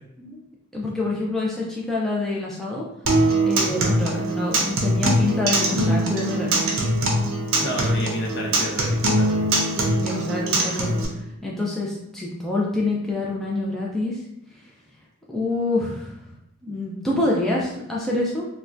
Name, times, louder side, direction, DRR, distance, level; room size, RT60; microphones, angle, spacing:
voice 1, 0.7-2.9 3.5-6.7 10.0-14.2 14.5-14.6 15.3-16.2 16.6-18.5, left 2 dB, ahead, -5 dB, 0.3 m, -26 dB
Acoustic guitar, 3.1-11.0, right 1 dB, 65° right, 0.6 m, -22 dB
voice 2, 7.6-9.5, equal, 55° left, -1 dB, 0.7 m, -30 dB
3.3 x 2.2 x 2.5 m, 0.83 s
head